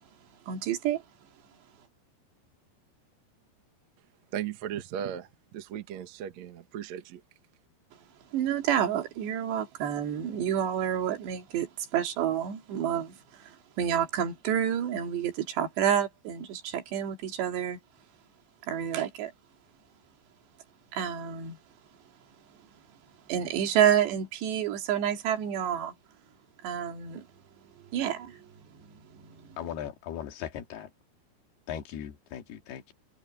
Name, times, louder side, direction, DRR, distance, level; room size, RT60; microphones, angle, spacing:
voice 1, 0.5-1.0 8.3-17.8 18.6-19.3 20.9-21.6 23.3-25.9 26.6-27.3 27.9-29.6, right 9 dB, 80° right, 4.4 m, -29 dB
voice 2, 4.3-7.2, right 9 dB, 55° right, 2.1 m, -37 dB
voice 3, 29.6-30.9 31.7-32.9, left 9 dB, 70° left, 4.0 m, -38 dB
omnidirectional pair, 4.9 m